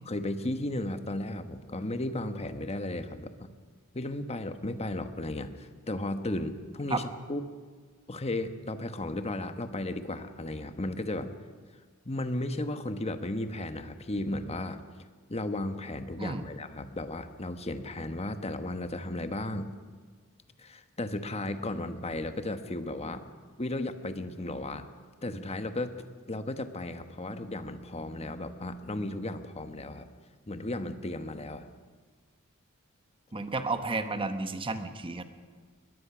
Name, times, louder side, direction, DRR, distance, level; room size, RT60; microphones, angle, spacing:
voice 1, 0.1-3.5 3.9-7.4 8.1-11.3 12.0-14.8 15.3-19.7 20.6-23.3 23.6-24.9 25.2-25.9 26.3-30.1 30.5-31.7, left 1 dB, 30° left, 9 dB, 1.2 m, -35 dB
voice 2, 33.3-35.2, right 3 dB, 25° right, 8 dB, 1.1 m, -32 dB
22.0 x 20.5 x 6.1 m, 1.5 s
head